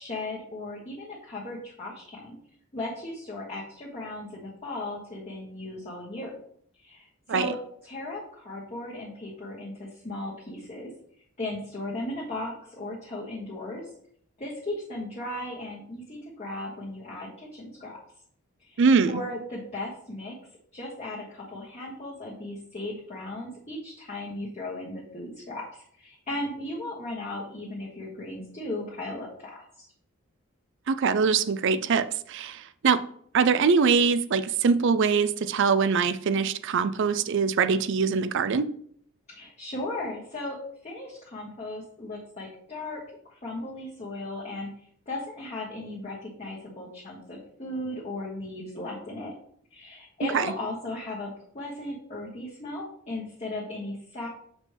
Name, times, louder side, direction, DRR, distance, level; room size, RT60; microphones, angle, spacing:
voice 1, 0.0-2.4 2.7-6.3 6.8-10.9 11.4-13.9 14.4-18.0 18.7-18.8 19.1-20.4 20.7-29.8 39.3-40.6 40.8-44.7 45.1-49.3 49.7-54.3, left 2 dB, 30° left, -6 dB, 1.4 m, -36 dB
voice 2, 18.8-19.2 30.9-33.0 33.3-38.7 50.3-50.5, right 5 dB, 55° right, 13 dB, 0.4 m, -23 dB
6.8 x 5.2 x 3.4 m, 0.63 s
head